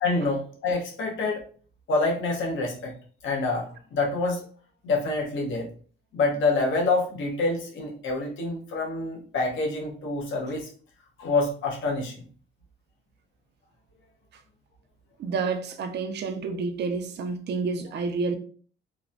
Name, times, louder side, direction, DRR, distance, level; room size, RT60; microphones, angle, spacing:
voice 1, 0.0-1.4 1.9-2.9 3.2-4.4 4.8-5.7 6.1-10.7 11.2-12.2, left 3 dB, 75° left, 0.9 m, -27 dB
voice 2, 15.2-18.4, right 4 dB, 60° right, 0.5 m, -29 dB
3.0 x 2.1 x 2.5 m
cardioid pair, 90°, 20 cm